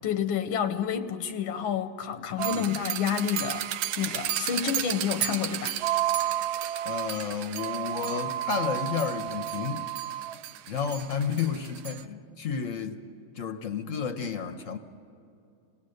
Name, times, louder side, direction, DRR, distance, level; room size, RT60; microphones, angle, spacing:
voice 1, 0.0-3.7 4.0-5.8, left 8 dB, 90° left, 1.6 m, -29 dB
sound 1, 2.4-12.0, right 12 dB, 90° right, 1.5 m, -31 dB
voice 2, 6.8-9.9 10.7-13.0 13.4-14.8, left 6 dB, 55° left, 1.0 m, -31 dB
26.0 x 19.0 x 6.5 m
omnidirectional pair, 2.2 m